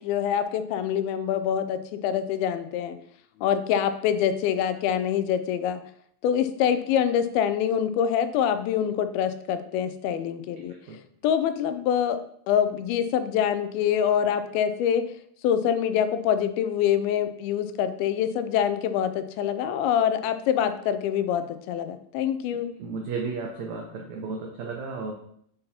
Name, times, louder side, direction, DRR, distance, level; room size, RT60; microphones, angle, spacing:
voice 1, 0.0-3.0 3.4-5.8 6.2-10.7 11.2-12.2 12.5-15.0 15.4-22.7, left 9 dB, 85° left, 10 dB, 2.4 m, -25 dB
voice 2, 22.8-25.1, right 4 dB, 85° right, 1 dB, 1.6 m, -33 dB
8.8 x 5.6 x 2.8 m, 0.66 s
omnidirectional pair, 4.3 m